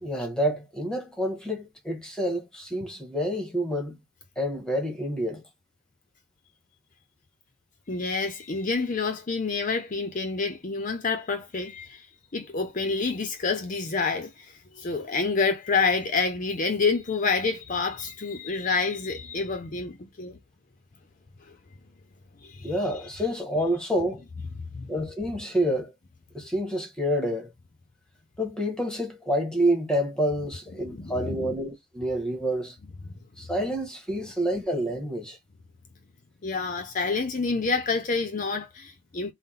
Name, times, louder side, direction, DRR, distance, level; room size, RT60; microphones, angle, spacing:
voice 1, 0.0-4.0 4.4-5.4 22.6-24.2 24.9-25.9 26.3-27.5 28.4-32.7 33.4-35.4, equal, 5° left, 1.0 m, -28 dB
voice 2, 7.9-12.1 12.3-20.4 21.4-21.6 22.4-22.9 24.7-24.9 30.8-31.6 33.0-33.1 36.4-39.3, left 4 dB, 40° left, 0.5 m, -28 dB
3.7 x 2.1 x 4.2 m
head